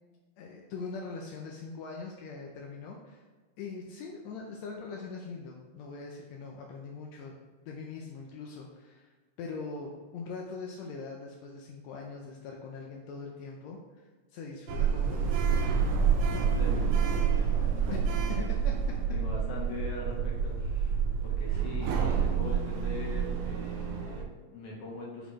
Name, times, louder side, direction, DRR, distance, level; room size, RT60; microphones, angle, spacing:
voice 1, 0.4-3.2 3.6-7.4 7.7-9.1 9.4-15.7 18.3-18.8, left 4 dB, 80° left, 0 dB, 1.6 m, -42 dB
Sliding door, 14.7-24.2, right 6 dB, 85° right, 2.3 m, -28 dB
voice 2, 16.3-18.0 19.1-25.3, left 1 dB, 55° left, -3 dB, 2.1 m, -42 dB
8.0 x 4.2 x 3.1 m, 1.4 s
omnidirectional pair, 3.7 m